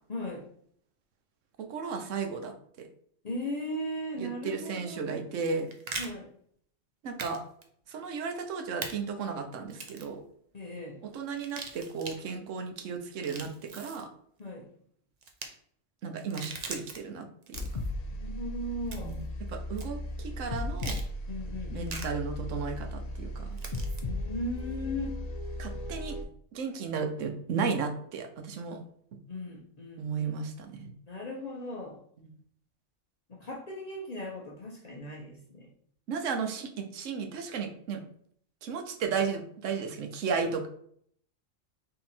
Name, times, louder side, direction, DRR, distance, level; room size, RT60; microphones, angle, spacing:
voice 1, 0.1-0.5 3.2-5.2 6.0-6.3 10.5-11.0 14.4-14.7 18.1-19.2 21.3-22.0 24.0-25.1 29.3-30.4 31.1-32.0 33.3-35.7, left 1 dB, 40° left, -1 dB, 0.6 m, -37 dB
voice 2, 1.6-2.9 4.2-5.7 7.0-7.4 7.9-10.2 11.1-14.1 16.0-17.8 19.0-19.2 19.5-21.0 21.7-23.6 25.6-26.2 26.5-28.8 30.0-30.9 36.1-38.0 38.6-40.7, right 5 dB, 75° right, 5 dB, 1.0 m, -34 dB
sound 1, 5.3-6.1 7.2-7.4 7.6-7.7 8.8-8.9 9.7-10.1 11.3-12.2 13.1-14.0 15.2-15.5 16.2-17.0 17.4-17.9 18.9-19.2 19.8-19.9 20.8-21.0 21.9-22.1 23.6-24.0, right 4 dB, 45° right, 0.6 m, -40 dB
sound 2, 17.5-26.2, left 1 dB, 85° left, 0.3 m, -36 dB
3.9 x 2.8 x 4.2 m, 0.64 s
omnidirectional pair, 1.3 m